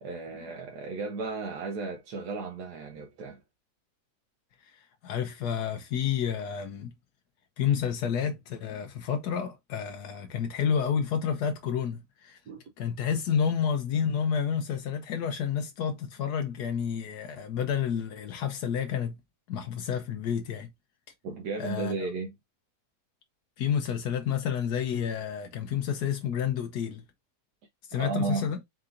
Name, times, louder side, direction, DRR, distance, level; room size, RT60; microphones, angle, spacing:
voice 1, 0.0-3.4 12.5-12.6 21.2-22.3 27.9-28.5, right 4 dB, 85° right, 1.4 m, -34 dB
voice 2, 4.6-6.9 7.6-12.4 12.8-19.2 19.5-20.7 21.6-21.9 23.6-27.0 27.9-28.6, left 8 dB, 80° left, 1.3 m, -30 dB
4.6 x 3.8 x 2.5 m
omnidirectional pair, 1.7 m